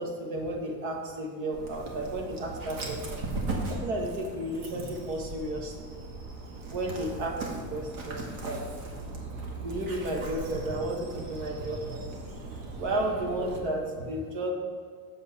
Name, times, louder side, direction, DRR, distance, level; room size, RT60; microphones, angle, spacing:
voice 1, 0.0-3.2 3.7-5.9 6.7-7.4 7.7-8.6 9.6-12.1 12.8-14.5, right 1 dB, 55° right, 1 dB, 1.4 m, -33 dB
Dog, 1.5-13.6, right 2 dB, 70° right, 1.8 m, -38 dB
7.9 x 7.4 x 4.3 m, 2.1 s
cardioid pair, 170°, 37 cm